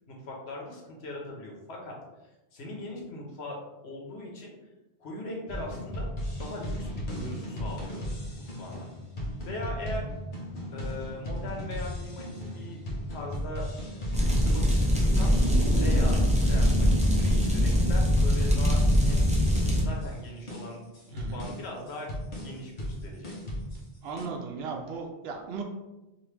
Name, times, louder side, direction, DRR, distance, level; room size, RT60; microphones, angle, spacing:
voice 1, 0.1-2.0 2.5-3.6 3.8-4.5 5.0-6.1 6.4-8.0 8.4-8.9 9.4-10.1 10.7-12.8 13.1-13.7 14.2-15.3 15.7-19.3 19.8-20.8 21.1-22.1 22.4-23.3, left 1 dB, 80° left, -1 dB, 1.1 m, -40 dB
sound 1, 5.5-24.2, equal, 55° left, 0.9 m, -36 dB
sound 2, 14.1-19.8, equal, 10° right, 0.5 m, -22 dB
voice 2, 21.1-21.5 24.0-25.6, right 4 dB, 75° right, 3 dB, 0.8 m, -36 dB
2.9 x 2.7 x 3.3 m, 1.0 s
omnidirectional pair, 1.1 m